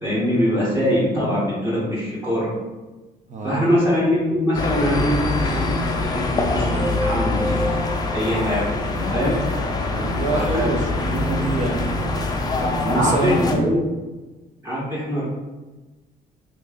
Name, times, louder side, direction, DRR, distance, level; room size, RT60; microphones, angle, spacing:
voice 1, 0.0-2.5 3.4-7.7 8.1-8.8 9.1-9.4 10.3-10.7 12.8-13.9 14.6-15.2, equal, 15° right, -7 dB, 0.9 m, -22 dB
voice 2, 3.3-3.7 9.9-11.9 12.6-13.7, right 2 dB, 45° right, 3 dB, 0.6 m, -26 dB
sound 1, 4.5-13.5, left 2 dB, 25° left, 0.5 m, -24 dB
3.0 x 2.6 x 3.6 m, 1.2 s
cardioid pair, 110°, 17 cm